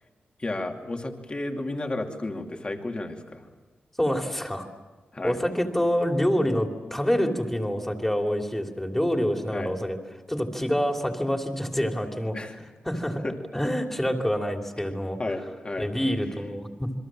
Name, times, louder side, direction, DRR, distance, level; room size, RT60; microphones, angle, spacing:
voice 1, 0.4-3.5 5.1-5.4 9.5-9.7 12.3-12.6 13.2-13.3 15.2-15.9, left 2 dB, 30° left, 3 dB, 2.6 m, -32 dB
voice 2, 4.0-4.7 5.2-10.0 10.3-12.4 12.8-13.3 13.5-15.2 15.8-16.9, equal, 10° left, 3 dB, 2.8 m, -26 dB
28.0 x 22.0 x 7.5 m, 1.3 s
wide cardioid pair, 105°, 4 cm